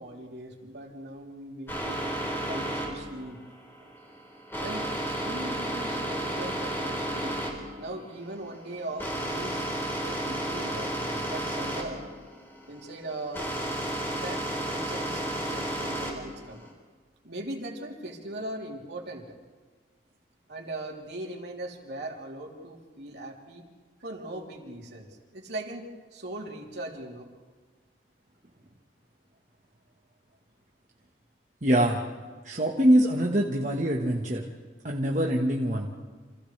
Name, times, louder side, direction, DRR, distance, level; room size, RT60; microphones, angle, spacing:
voice 1, 0.0-2.2 2.5-3.4 4.6-12.0 12.7-13.4 14.1-16.7 17.2-19.3 20.5-23.6 24.0-27.3, right 1 dB, 65° right, -1 dB, 3.4 m, -39 dB
sound 1, 1.7-16.7, right 1 dB, 10° left, 4.1 m, -32 dB
voice 2, 31.6-32.0 32.4-34.4 34.8-35.9, right 1 dB, 40° right, -1 dB, 1.4 m, -24 dB
29.5 x 27.0 x 3.4 m, 1.5 s
head